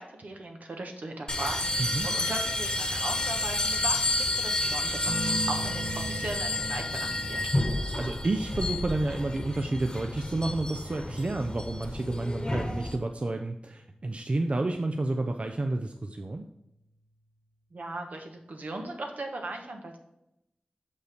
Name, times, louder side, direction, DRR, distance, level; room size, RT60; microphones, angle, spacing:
voice 1, 0.0-7.4 17.7-20.0, right 2 dB, 75° right, 3 dB, 1.3 m, -38 dB
sound 1, 1.3-13.0, left 1 dB, 30° left, 1.1 m, -30 dB
sound 2, 5.1-14.1 15.6-16.1, right 1 dB, 20° right, 1.1 m, -41 dB
voice 2, 8.0-16.5, right 2 dB, 45° right, 5 dB, 0.5 m, -30 dB
6.4 x 5.4 x 5.1 m, 0.86 s
wide cardioid pair, 65°, 3 cm